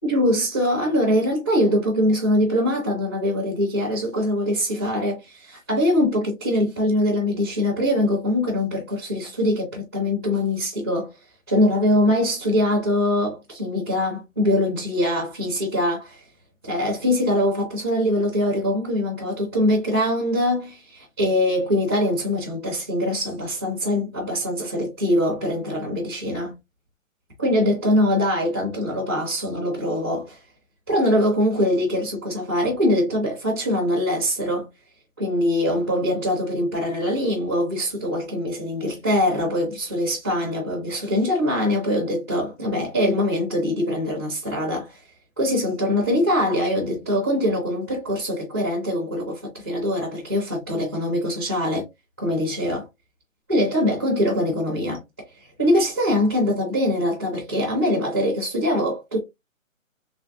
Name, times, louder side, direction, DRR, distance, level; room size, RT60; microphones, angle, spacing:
voice 1, 0.0-11.1 11.5-16.2 16.6-26.6 27.4-30.4 30.9-34.7 35.2-45.0 45.4-51.8 52.2-52.9 53.5-55.0 55.6-59.2, left 1 dB, 10° right, 0.6 m, -23 dB
3.3 x 3.2 x 2.5 m
hypercardioid pair, 165°, 41 cm